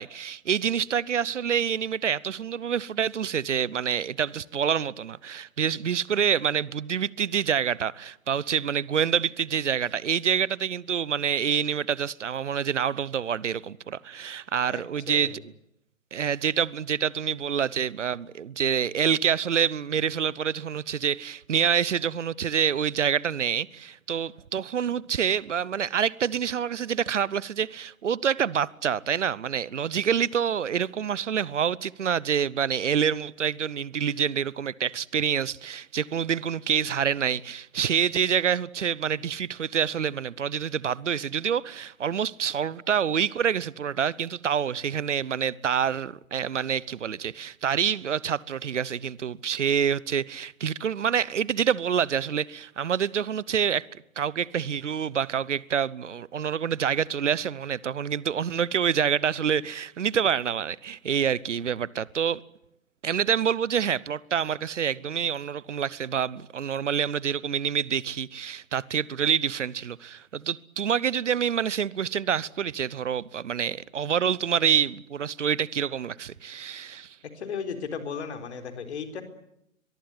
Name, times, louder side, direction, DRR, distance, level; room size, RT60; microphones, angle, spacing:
voice 1, 0.0-15.4 16.1-62.4 63.0-77.2, right 8 dB, 60° right, 0.9 m, -27 dB
voice 2, 14.6-15.4 77.3-79.2, left 6 dB, 55° left, 4.3 m, -35 dB
23.0 x 22.5 x 9.5 m
figure-of-eight pair, 125°, 40 cm